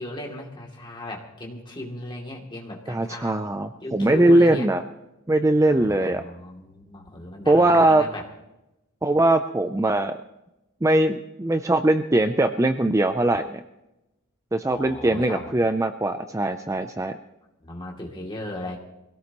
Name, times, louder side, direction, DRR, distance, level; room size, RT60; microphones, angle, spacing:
voice 1, 0.0-3.4 3.8-4.7 5.6-8.3 14.6-15.5 17.6-18.8, left 1 dB, 20° left, -1 dB, 2.7 m, -37 dB
voice 2, 2.9-4.8 5.3-6.2 7.5-8.0 9.0-10.2 10.8-13.6 14.5-17.1, right 1 dB, 15° right, 8 dB, 0.5 m, -21 dB
23.5 x 17.5 x 3.0 m, 0.94 s
head